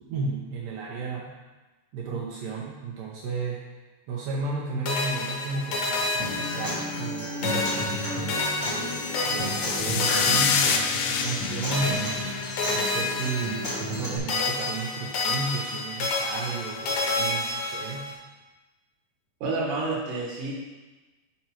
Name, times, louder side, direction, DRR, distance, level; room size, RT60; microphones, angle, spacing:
voice 1, 0.0-1.4 1.9-3.6 4.1-7.9 8.6-12.2 12.7-18.1, right 4 dB, 75° right, -4 dB, 2.2 m, -33 dB
sound 1, 4.9-7.2 7.4-11.4 11.7-14.0 14.3-18.1, left 3 dB, 65° left, 1.8 m, -29 dB
Acoustic guitar, 6.2-14.2, left 1 dB, 30° left, 1.5 m, -33 dB
trance noise rise reverse crush, 8.8-13.3, left 6 dB, 85° left, 1.9 m, -29 dB
voice 2, 19.4-20.5, right 3 dB, 50° right, -4 dB, 1.8 m, -29 dB
5.8 x 5.2 x 4.4 m, 1.2 s
omnidirectional pair, 4.3 m